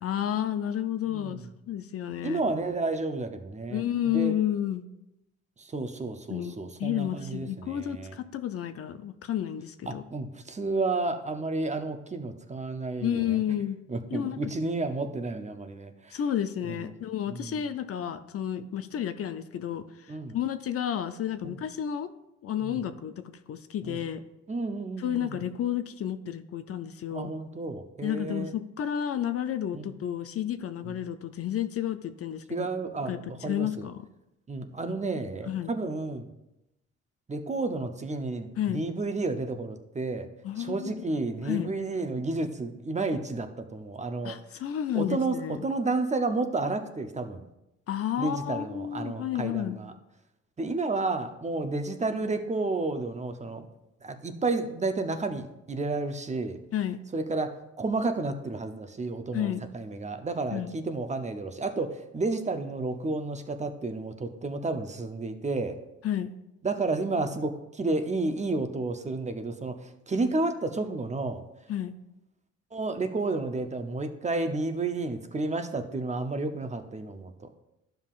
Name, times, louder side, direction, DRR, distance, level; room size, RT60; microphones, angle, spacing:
voice 1, 0.0-2.4 3.7-4.9 6.3-10.0 13.0-13.8 14.1-14.4 16.1-22.1 22.4-23.2 23.5-24.2 25.0-27.3 28.0-32.7 33.1-34.0 34.9-35.0 35.4-35.7 38.6-38.8 40.4-41.0 41.4-41.7 44.2-45.6 47.9-49.8 56.7-57.0 59.3-59.7 60.5-60.7 66.0-66.3 71.7-72.0, left 10 dB, 50° left, 10 dB, 0.5 m, -31 dB
voice 2, 1.1-1.4 2.2-4.3 5.6-8.2 9.9-13.4 13.9-16.2 16.7-16.8 17.3-17.6 20.1-20.4 21.4-21.5 22.6-22.8 23.8-24.0 24.5-25.4 27.1-28.5 29.7-29.9 30.8-30.9 32.5-33.9 34.5-36.3 37.3-40.3 40.6-44.4 44.9-47.4 48.2-49.9 50.6-53.7 54.0-56.6 57.1-65.8 66.6-71.4 72.7-77.5, right 3 dB, 25° right, 7 dB, 0.7 m, -31 dB
11.5 x 5.5 x 2.4 m, 0.91 s
cardioid pair, 90°, 30 cm